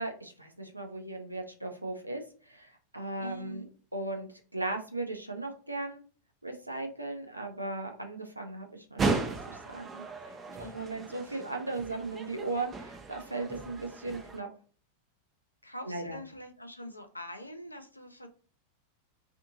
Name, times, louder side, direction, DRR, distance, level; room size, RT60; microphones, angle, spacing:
voice 1, 0.0-3.6 3.9-6.0 6.4-10.0 10.6-14.5 15.9-16.2, right 2 dB, 85° right, 3 dB, 0.5 m, -37 dB
voice 2, 3.2-3.7 10.5-10.8 11.2-11.4 15.6-18.3, left 1 dB, 85° left, 5 dB, 0.5 m, -44 dB
sound 1, 9.0-14.4, right 3 dB, 20° right, 0.5 m, -36 dB
2.6 x 2.6 x 2.5 m, 0.40 s
figure-of-eight pair, 90°, 0 cm